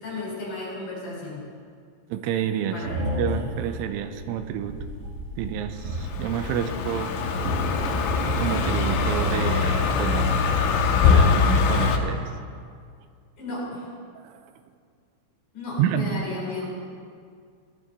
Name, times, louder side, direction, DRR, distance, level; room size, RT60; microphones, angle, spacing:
voice 1, 0.0-1.4 2.7-3.0 13.4-13.9 15.5-16.9, left 2 dB, 45° left, -4 dB, 4.9 m, -34 dB
voice 2, 2.1-4.8 5.4-7.1 8.4-10.5 11.0-12.3 14.2-14.4 15.8-16.2, right 9 dB, 90° right, 9 dB, 3.1 m, -29 dB
sound 1, 2.8-9.7, equal, 55° right, 3.4 m, -33 dB
Car passing by, 5.9-12.0, left 5 dB, 80° left, 3.5 m, -22 dB
18.0 x 12.0 x 4.0 m, 2.1 s
omnidirectional pair, 5.6 m